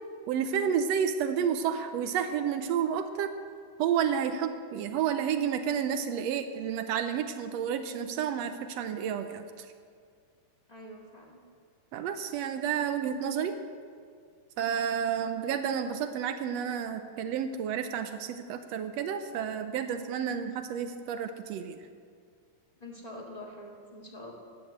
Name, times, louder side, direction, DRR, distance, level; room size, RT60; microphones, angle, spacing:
voice 1, 0.3-3.3 3.8-9.7 11.9-13.6 14.6-21.8, right 8 dB, 80° right, 8 dB, 1.5 m, -30 dB
voice 2, 10.7-11.4 22.8-24.3, left 1 dB, 20° left, -1 dB, 1.1 m, -45 dB
13.5 x 9.7 x 7.9 m, 2.1 s
omnidirectional pair, 3.6 m